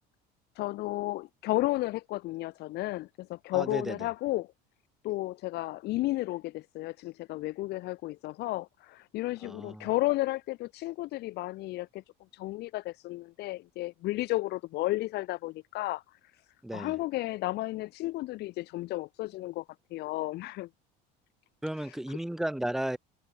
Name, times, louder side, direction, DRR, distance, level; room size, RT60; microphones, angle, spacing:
voice 1, 0.6-4.5 5.0-12.0 12.3-16.4 16.7-19.6 19.9-20.7 21.8-22.2, left 18 dB, 55° left, 0.5 m, -33 dB
voice 2, 3.5-4.0 9.4-9.9 16.6-16.9 21.6-23.0, right 1 dB, ahead, 0.3 m, -34 dB
supercardioid pair, 105°, 20 cm